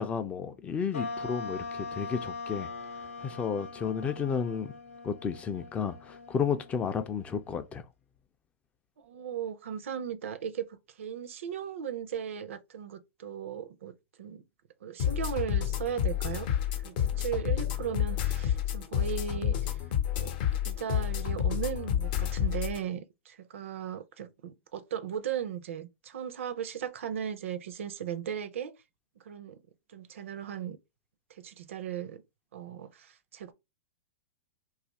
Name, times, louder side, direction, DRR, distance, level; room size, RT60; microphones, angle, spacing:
voice 1, 0.0-2.7 3.2-4.7 5.0-7.8, left 6 dB, 20° left, 0.3 m, -32 dB
sound 1, 0.9-7.6, left 3 dB, 90° left, 0.7 m, -41 dB
voice 2, 9.0-14.4 14.8-16.5 16.8-19.8 20.2-20.4 20.6-28.8 29.2-29.6 29.9-30.8 31.3-32.2 32.5-33.5, right 8 dB, 70° right, 0.5 m, -37 dB
sound 2, 15.0-22.8, left 10 dB, 50° left, 0.6 m, -29 dB
2.7 x 2.4 x 4.0 m
hypercardioid pair, 135°, 7 cm